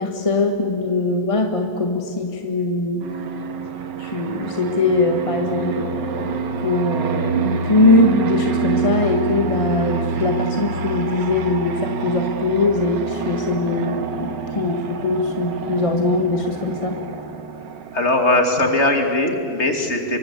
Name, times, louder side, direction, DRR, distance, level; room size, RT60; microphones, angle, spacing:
voice 1, 0.0-3.0 4.0-16.9, left 2 dB, 20° left, 4 dB, 1.4 m, -21 dB
Fixed-wing aircraft airplane, 3.0-18.2, right 5 dB, 80° right, 2.0 m, -27 dB
voice 2, 17.9-20.2, left 2 dB, 40° left, 4 dB, 2.8 m, -19 dB
26.0 x 23.5 x 8.4 m, 2.5 s
omnidirectional pair, 1.9 m